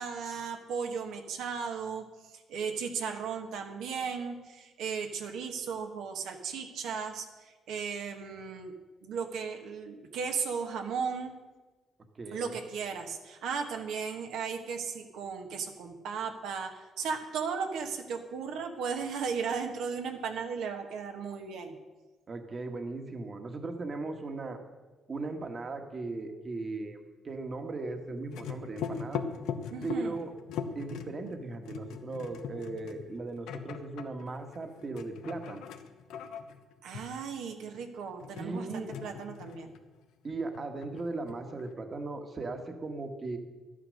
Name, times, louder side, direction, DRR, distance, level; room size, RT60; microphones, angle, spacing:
voice 1, 0.0-2.0 2.5-8.7 9.0-11.3 12.3-21.8 29.7-30.2 36.8-39.7, right 6 dB, 85° right, 4 dB, 1.3 m, -36 dB
voice 2, 12.1-12.6 22.3-24.6 25.1-27.0 27.2-29.2 29.8-30.3 30.7-35.6 38.4-38.9 40.2-43.4, right 3 dB, 40° right, 6 dB, 1.5 m, -37 dB
sound 1, 28.1-40.0 40.3-41.7, left 7 dB, 90° left, 1.0 m, -41 dB
11.5 x 9.9 x 6.4 m, 1.3 s
cardioid pair, 90°, 0 cm